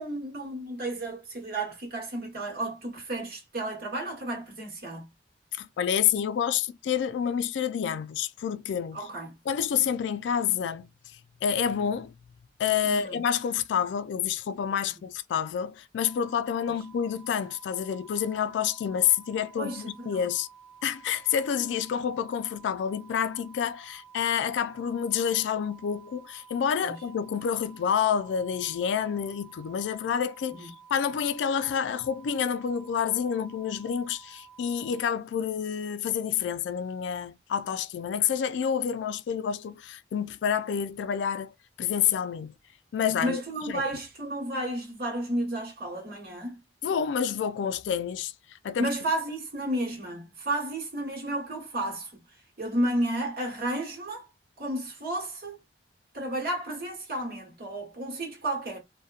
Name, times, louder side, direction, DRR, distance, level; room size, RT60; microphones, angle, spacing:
voice 1, 0.0-5.1 8.9-9.4 12.8-13.2 19.6-20.2 26.8-27.0 30.5-30.7 43.1-46.6 48.8-52.2 52.6-54.3 54.6-55.6 56.1-58.8, right 1 dB, 60° right, 1.1 m, -32 dB
voice 2, 5.5-9.0 9.5-10.9 11.4-12.1 12.6-20.5 20.8-42.5 42.9-43.4 43.7-43.9 46.8-48.3 48.6-48.9, left 8 dB, 75° left, 0.3 m, -28 dB
sound 1, 16.0-35.0, right 7 dB, 75° right, 0.8 m, -52 dB
2.7 x 2.1 x 2.3 m
head